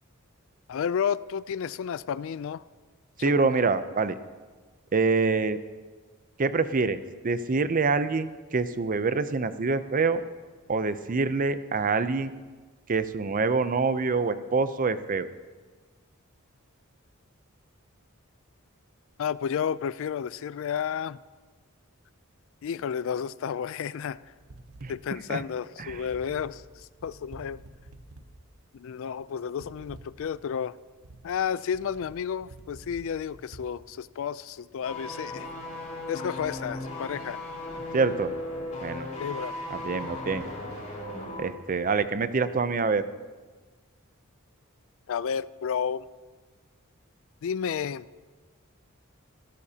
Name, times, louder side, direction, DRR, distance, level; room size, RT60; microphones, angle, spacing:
voice 1, 0.7-2.6 3.2-3.7 19.2-21.2 22.6-24.2 24.9-27.6 28.7-30.8 31.2-35.5 36.1-37.4 39.2-39.5 45.1-46.1 47.4-48.1, left 7 dB, 65° left, 18 dB, 0.4 m, -31 dB
voice 2, 3.2-4.2 4.9-5.6 6.4-7.0 7.2-10.2 10.7-12.3 12.9-15.3 24.8-24.9 25.3-25.4 25.8-26.0 37.9-38.4 38.8-39.1 39.7-40.5 41.4-43.0, right 4 dB, 40° right, 12 dB, 0.5 m, -26 dB
sound 1, 24.1-33.7, right 2 dB, 80° right, 1.0 m, -50 dB
sound 2, 34.8-41.5 41.8-41.9, left 1 dB, 35° left, 4.5 m, -37 dB
26.5 x 11.5 x 2.8 m, 1.4 s
head